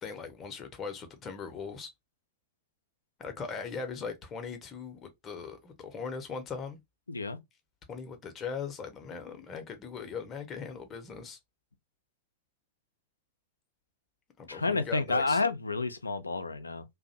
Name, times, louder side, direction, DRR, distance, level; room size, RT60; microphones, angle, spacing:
voice 1, 0.0-1.9 3.2-6.8 7.9-11.4 14.4-15.4, left 5 dB, 25° left, 0.6 m, -39 dB
voice 2, 7.1-7.4 14.5-16.8, left 3 dB, 80° left, 0.3 m, -30 dB
2.5 x 2.0 x 2.6 m
figure-of-eight pair, 90°, 0 cm